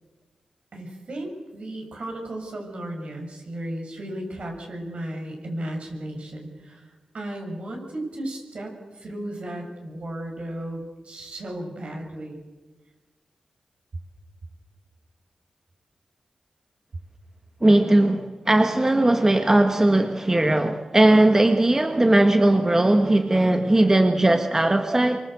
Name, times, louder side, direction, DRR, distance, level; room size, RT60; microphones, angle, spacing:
voice 1, 0.7-12.4, right 1 dB, 65° right, 2 dB, 7.1 m, -35 dB
voice 2, 17.6-25.2, right 1 dB, 25° right, 6 dB, 1.7 m, -18 dB
26.5 x 25.0 x 7.9 m, 1.3 s
cardioid pair, 65°, 2 cm